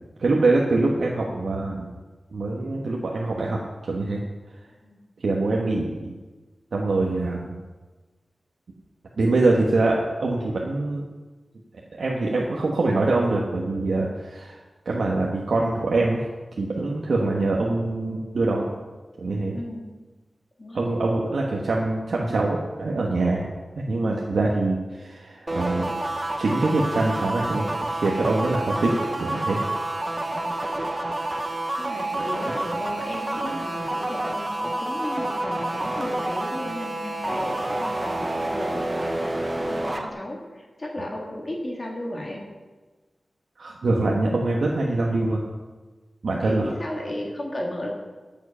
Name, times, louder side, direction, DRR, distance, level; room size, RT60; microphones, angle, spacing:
voice 1, 0.2-1.9 2.3-4.2 5.2-6.1 6.7-7.6 9.2-11.0 12.0-14.6 14.8-16.3 16.6-18.7 19.2-19.6 20.7-23.5 23.8-25.9 26.4-27.6 27.9-29.6 43.6-45.4 46.2-46.7, right 2 dB, 85° right, -2 dB, 1.4 m, -24 dB
sound 1, 25.5-40.1, right 1 dB, 25° right, 1.0 m, -28 dB
voice 2, 30.3-30.6 31.3-31.5 31.8-42.4 46.4-47.9, left 1 dB, 35° left, -1 dB, 2.4 m, -34 dB
14.0 x 7.7 x 5.7 m, 1.3 s
wide cardioid pair, 110°, 0 cm